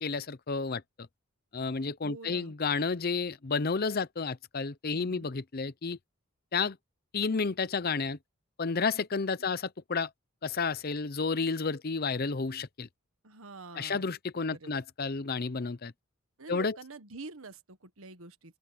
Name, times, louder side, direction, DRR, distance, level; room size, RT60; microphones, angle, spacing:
voice 1, 0.0-0.8 1.5-6.0 6.5-6.8 7.1-8.2 8.6-10.1 10.4-12.9 13.7-15.9 16.5-16.8, left 4 dB, 45° left, 0.7 m, -31 dB
voice 2, 2.0-2.5 4.9-5.4 9.4-9.6 13.2-14.0 14.5-14.8 16.4-18.6, right 3 dB, 75° right, 1.5 m, -47 dB
open air
head